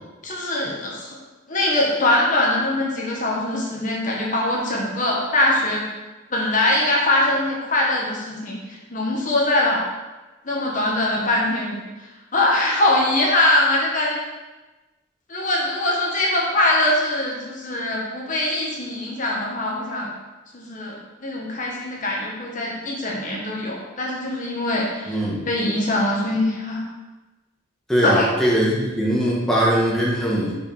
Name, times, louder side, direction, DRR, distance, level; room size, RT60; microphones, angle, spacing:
voice 1, 0.2-1.2 1.5-5.9 6.3-9.8 10.4-11.9 12.3-14.2 15.3-20.1 20.5-26.9 28.0-28.3, left 1 dB, 40° left, -3 dB, 1.3 m, -22 dB
voice 2, 25.1-25.4 27.9-30.5, equal, ahead, -6 dB, 1.2 m, -20 dB
5.1 x 5.0 x 5.4 m, 1.1 s
head